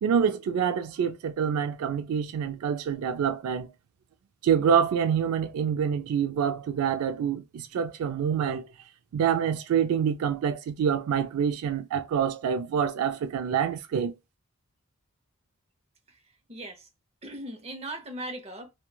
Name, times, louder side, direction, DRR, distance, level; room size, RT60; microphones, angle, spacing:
voice 1, 0.0-3.7 4.4-8.7 9.1-14.1, right 7 dB, 85° right, 0.3 m, -26 dB
voice 2, 16.5-16.9 17.2-18.7, right 1 dB, 30° right, 0.8 m, -38 dB
3.0 x 2.2 x 2.2 m
head